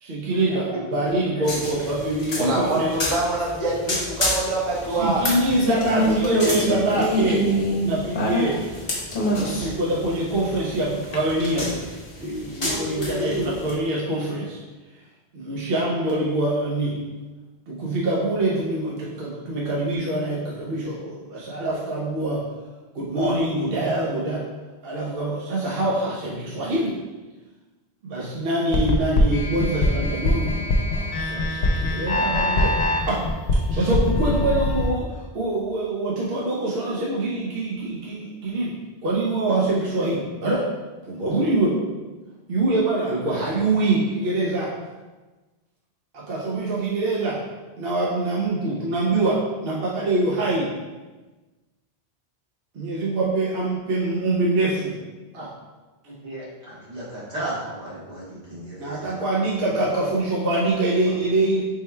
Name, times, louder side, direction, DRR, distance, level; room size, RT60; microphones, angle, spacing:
voice 1, 0.0-2.9 5.0-7.5 7.8-8.6 9.3-11.8 12.2-14.6 15.3-17.0 17.7-22.4 22.9-24.4 24.8-27.0 28.0-32.8 33.1-33.2 33.5-38.8 39.0-40.7 41.0-41.8 42.5-44.7 46.1-47.4 47.8-50.7 52.7-54.9 55.3-55.5 58.8-61.6, right 2 dB, 65° right, -5 dB, 0.8 m, -24 dB
sound 1, 1.4-13.8, left 1 dB, 35° left, 0.7 m, -33 dB
voice 2, 2.4-5.3 5.9-6.5, right 1 dB, 35° right, -4 dB, 0.7 m, -25 dB
sound 2, 4.8-8.8 9.1-9.9 11.1-11.2, equal, 60° left, 0.9 m, -24 dB
voice 3, 12.6-13.5 56.0-59.2 59.7-59.8 61.0-61.1, right 1 dB, 85° right, -8 dB, 1.6 m, -33 dB
sound 3, 28.7-34.9, left 2 dB, 85° left, 0.9 m, -22 dB
3.6 x 2.2 x 4.2 m, 1.2 s
omnidirectional pair, 1.1 m